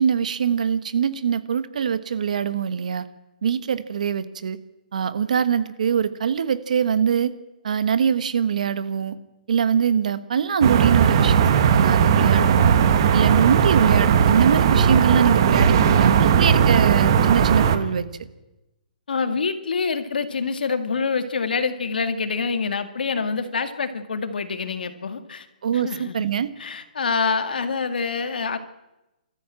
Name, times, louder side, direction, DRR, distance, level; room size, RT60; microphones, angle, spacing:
voice 1, 0.0-3.0 3.4-4.6 4.9-7.3 7.6-9.1 9.5-12.8 13.1-18.0 25.6-26.5, right 7 dB, 55° right, 14 dB, 1.2 m, -23 dB
sound 1, 10.6-17.8, right 7 dB, 30° right, 1.2 m, -17 dB
voice 2, 19.1-25.5 25.7-26.3 26.6-28.6, left 5 dB, 85° left, 9 dB, 2.1 m, -26 dB
24.5 x 14.0 x 8.8 m, 1.0 s
hypercardioid pair, 180°, 5 cm